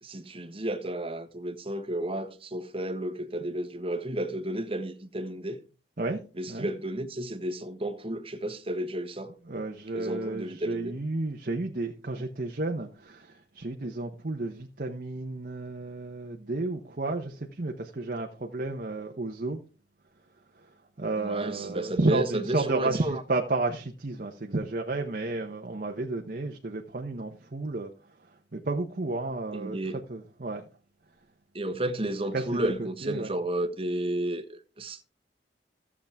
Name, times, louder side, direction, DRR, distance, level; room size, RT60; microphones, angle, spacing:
voice 1, 0.0-5.6 6.4-9.4 9.9-11.0 21.2-23.2 29.5-30.0 31.5-35.0, right 1 dB, 30° right, 1.3 m, -32 dB
voice 2, 9.5-19.6 20.6-20.7 21.0-27.9 28.2-29.8 30.1-30.6 32.3-33.3, right 2 dB, 50° right, 0.9 m, -32 dB
14.5 x 7.3 x 3.5 m
head